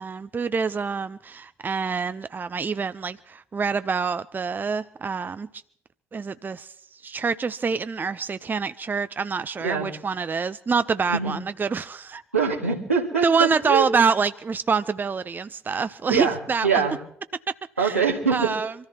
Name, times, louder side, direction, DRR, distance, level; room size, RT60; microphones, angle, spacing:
voice 1, 0.0-5.5 6.1-12.2 13.2-16.8 17.8-18.0 18.3-18.7, right 5 dB, 25° right, 0.6 m, -26 dB
voice 2, 12.3-13.9 16.1-17.0 17.8-18.6, right 5 dB, 85° right, 2.0 m, -24 dB
26.0 x 14.0 x 2.9 m
figure-of-eight pair, 45°, 7 cm